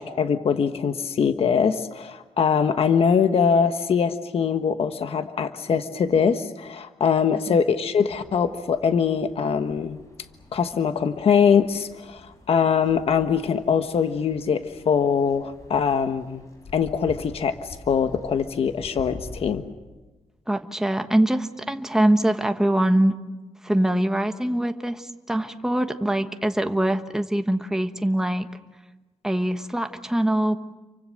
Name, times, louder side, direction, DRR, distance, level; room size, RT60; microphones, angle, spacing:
voice 1, 0.0-10.0 10.5-16.4 16.7-19.6, left 6 dB, 60° left, 9 dB, 1.3 m, -22 dB
sound 1, 8.0-19.6, left 2 dB, 25° left, 7.2 m, -46 dB
voice 2, 20.5-23.2 23.6-28.5 29.2-30.6, right 1 dB, 5° right, 7 dB, 1.3 m, -23 dB
30.0 x 24.5 x 6.5 m, 1.2 s
wide cardioid pair, 135°, 11 cm